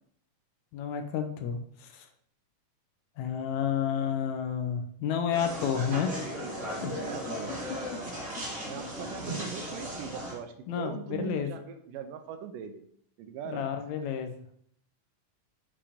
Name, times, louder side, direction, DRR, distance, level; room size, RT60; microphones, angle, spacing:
voice 1, 0.7-2.1 3.2-6.1 6.8-7.0 10.7-11.5 13.5-14.3, left 8 dB, 70° left, 7 dB, 1.9 m, -31 dB
sound 1, 5.3-10.3, equal, 25° right, 2.1 m, -36 dB
voice 2, 6.9-7.6 8.6-12.8 13.2-13.7, right 7 dB, 85° right, 8 dB, 2.4 m, -41 dB
7.1 x 5.3 x 5.1 m, 0.66 s
omnidirectional pair, 3.8 m